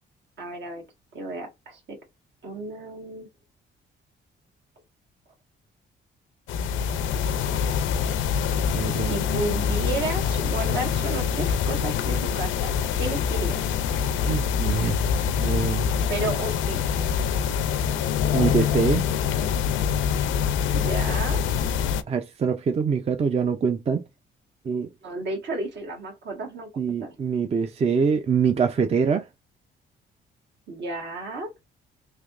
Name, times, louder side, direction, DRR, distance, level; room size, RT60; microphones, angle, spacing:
voice 1, 0.4-0.8 1.1-2.0 2.4-3.3 8.9-13.6 16.1-17.2 20.7-21.4 25.0-26.7 27.0-27.1 30.7-31.5, right 2 dB, 65° right, 1.4 m, -32 dB
sound 1, 6.5-22.0, left 7 dB, 80° left, 0.4 m, -25 dB
voice 2, 8.7-9.2 14.3-15.0 15.4-15.9 18.3-19.0 22.1-24.1 24.6-24.9 26.8-29.3, right 6 dB, 30° right, 0.4 m, -24 dB
3.3 x 2.8 x 2.5 m
cardioid pair, 90°, 20 cm